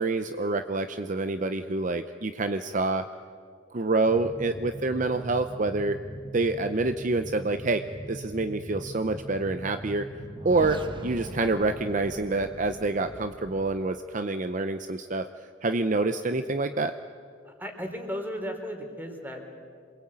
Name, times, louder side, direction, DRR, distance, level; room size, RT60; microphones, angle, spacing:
voice 1, 0.0-3.1 3.7-6.0 6.3-10.1 10.4-15.3 15.6-16.9, right 3 dB, 40° right, 9 dB, 0.7 m, -27 dB
sound 1, 4.0-13.8, right 1 dB, 25° right, 1.2 m, -41 dB
voice 2, 17.6-19.4, equal, 10° right, 4 dB, 3.4 m, -35 dB
27.5 x 21.5 x 8.8 m, 2.1 s
head